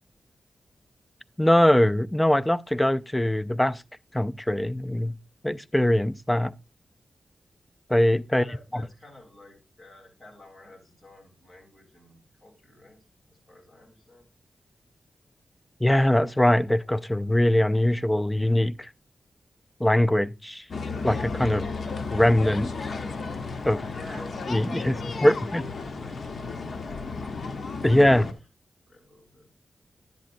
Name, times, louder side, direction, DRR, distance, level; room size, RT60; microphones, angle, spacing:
voice 1, 1.4-3.8 4.1-5.2 5.4-6.5 7.9-8.4 8.7-8.8 15.8-18.9 19.8-20.6 21.0-21.7 22.1-22.9 23.6-23.8 24.5-25.6 27.8-28.3, left 1 dB, 10° left, 0.4 m, -22 dB
voice 2, 8.3-14.3 23.8-27.4 28.9-29.5, left 1 dB, 30° left, 3.3 m, -51 dB
sound 1, 20.7-28.3, left 4 dB, 60° left, 0.9 m, -33 dB
10.5 x 8.7 x 2.6 m
wide cardioid pair, 115°, 0 cm